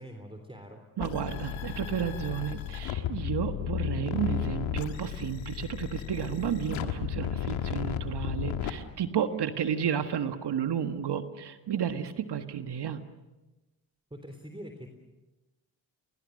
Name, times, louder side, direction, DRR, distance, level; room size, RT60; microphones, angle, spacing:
voice 1, 0.0-0.8 14.1-14.9, equal, 10° right, 5 dB, 3.6 m, -44 dB
sound 1, 1.0-8.7, left 11 dB, 85° left, 1.6 m, -34 dB
voice 2, 1.0-13.0, right 8 dB, 60° right, 8 dB, 1.6 m, -32 dB
29.0 x 22.0 x 6.5 m, 1.1 s
supercardioid pair, 50°, 46 cm